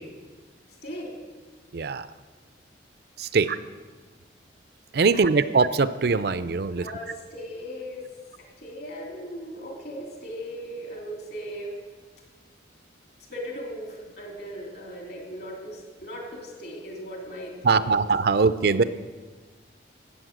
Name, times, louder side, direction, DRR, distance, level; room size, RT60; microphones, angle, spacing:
voice 1, 0.8-1.1 3.4-3.6 5.1-5.4 6.8-8.1 8.4-11.8 13.2-18.1, equal, 55° left, -1 dB, 3.2 m, -38 dB
voice 2, 1.7-2.1 3.2-3.6 4.9-6.8 17.6-18.8, right 4 dB, 55° right, 14 dB, 0.5 m, -22 dB
14.5 x 8.7 x 6.2 m, 1.4 s
head